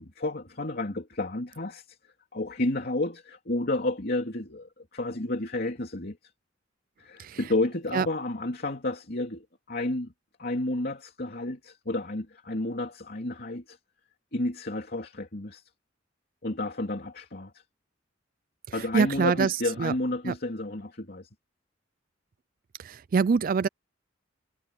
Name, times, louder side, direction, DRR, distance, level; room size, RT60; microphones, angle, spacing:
voice 1, 0.0-2.0 2.3-6.2 7.0-10.1 10.4-13.8 14.3-15.6 16.4-17.6 18.7-21.3, left 2 dB, 55° left, 2.9 m, -31 dB
voice 2, 18.8-19.9 20.2-20.3 22.8-23.7, right 5 dB, 50° right, 0.4 m, -25 dB
head